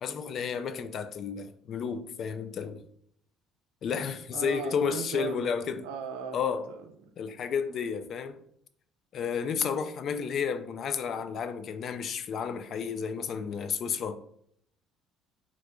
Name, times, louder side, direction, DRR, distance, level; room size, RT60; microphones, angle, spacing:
voice 1, 0.0-2.8 3.8-5.9 6.3-6.7 7.2-8.4 9.1-14.2, left 6 dB, 55° left, 0.3 m, -32 dB
voice 2, 4.3-5.5 5.8-6.9, right 7 dB, 90° right, 0.4 m, -38 dB
3.0 x 2.4 x 3.5 m
supercardioid pair, 85°, 0 cm